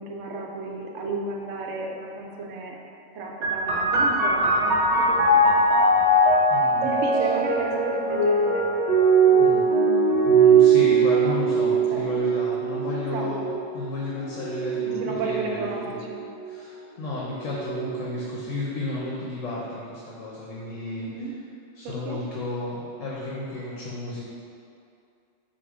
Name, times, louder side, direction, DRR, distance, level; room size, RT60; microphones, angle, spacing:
voice 1, 0.0-2.8 3.1-5.4 6.7-8.7 9.3-10.3 11.1-11.4 11.7-12.1 13.1-13.3 14.8-16.2 21.0-21.3 21.8-22.2, right 3 dB, 80° right, -1 dB, 0.9 m, -33 dB
sound 1, 3.4-16.6 17.5-18.3, right 3 dB, 40° right, 0.7 m, -21 dB
voice 2, 6.5-6.9 9.4-9.7 10.2-13.5 13.7-16.0 16.5-21.1 21.7-24.2, left 2 dB, 80° left, -5 dB, 1.0 m, -32 dB
4.3 x 2.5 x 4.7 m, 2.4 s
omnidirectional pair, 1.3 m